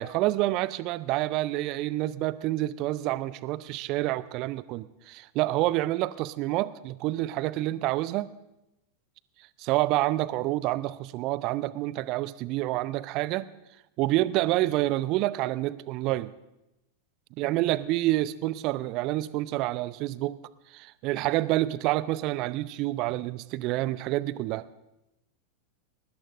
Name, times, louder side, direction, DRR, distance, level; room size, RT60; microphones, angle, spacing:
voice 1, 0.0-8.3 9.6-13.5 14.0-16.3 17.4-20.4 20.7-24.7, right 16 dB, 40° right, 18 dB, 0.6 m, -28 dB
22.5 x 20.0 x 2.5 m, 0.91 s
figure-of-eight pair, 90°, 0 cm